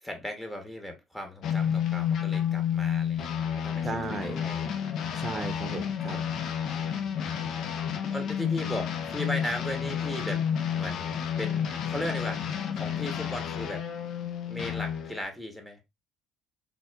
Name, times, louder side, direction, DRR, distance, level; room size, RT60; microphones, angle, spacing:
voice 1, 0.0-4.8 6.9-7.4 8.1-10.4 10.7-13.8 14.5-15.8, left 1 dB, 5° left, 1.0 m, -37 dB
sound 1, 1.4-15.2, left 8 dB, 60° left, 0.6 m, -30 dB
voice 2, 3.8-4.4 5.2-6.2, right 3 dB, 30° right, 0.7 m, -35 dB
4.1 x 2.4 x 2.3 m
supercardioid pair, 80°, 0 cm